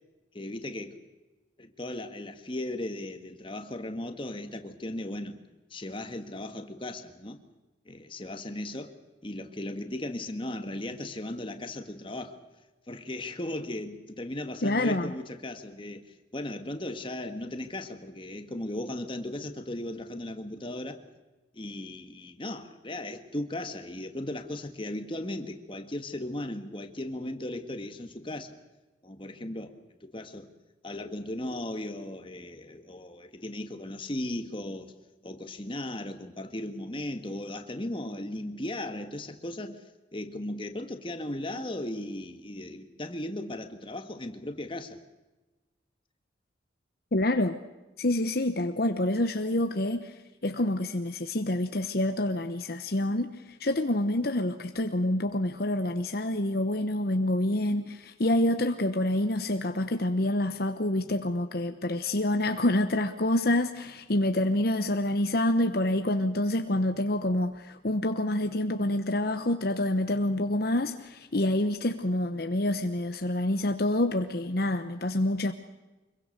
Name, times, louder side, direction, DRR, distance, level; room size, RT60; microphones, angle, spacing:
voice 1, 0.3-1.0 1.6-5.4 5.7-7.4 7.9-9.0 9.2-12.4 12.9-16.0 16.3-21.0 21.5-28.6 29.0-29.7 30.0-30.5 30.8-34.9 35.2-39.8 40.1-45.0, left 1 dB, 25° left, 7 dB, 1.7 m, -37 dB
voice 2, 14.6-15.1 47.1-47.5 48.0-75.5, left 1 dB, 55° left, 7 dB, 1.0 m, -27 dB
25.5 x 22.5 x 6.7 m, 1.1 s
head